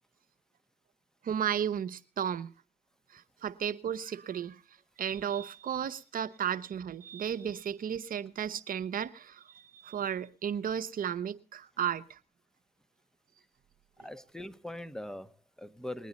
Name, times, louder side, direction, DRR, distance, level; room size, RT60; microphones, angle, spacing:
voice 1, 1.2-2.5 3.1-4.6 5.0-12.2, right 8 dB, 70° right, 0.8 m, -34 dB
voice 2, 14.0-16.1, left 1 dB, 5° left, 1.0 m, -42 dB
20.5 x 9.4 x 4.1 m
supercardioid pair, 45°, 15 cm